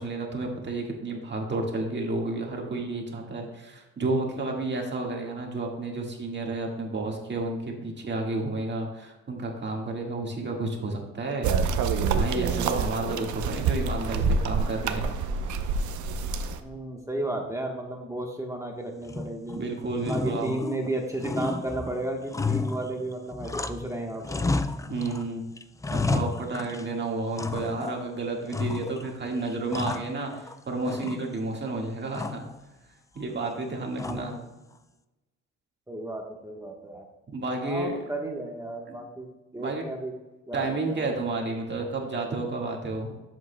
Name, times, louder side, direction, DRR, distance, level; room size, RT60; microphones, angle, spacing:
voice 1, 0.0-11.5 12.1-15.2 19.6-20.6 24.8-25.4 25.9-32.4 33.1-34.4 37.3-37.9 38.9-39.0 39.6-39.9 40.5-43.2, right 2 dB, 35° right, 0 dB, 1.7 m, -31 dB
sound 1, 11.4-16.6, right 5 dB, 75° right, 0.7 m, -27 dB
voice 2, 16.6-19.7 20.1-24.5 34.0-34.5 35.9-37.1 37.6-40.1 40.5-41.1, right 1 dB, 10° right, 1 dB, 1.2 m, -33 dB
sound 2, 19.1-19.6 20.0-20.9 21.2-23.9 24.2-25.2 25.6-26.9 27.4-28.0 28.5-29.1 29.5-30.5 30.9-31.6 32.1-32.6 34.0-34.5, left 3 dB, 10° left, 0.4 m, -32 dB
11.0 x 7.5 x 2.2 m, 1.1 s
cardioid pair, 90°, 30 cm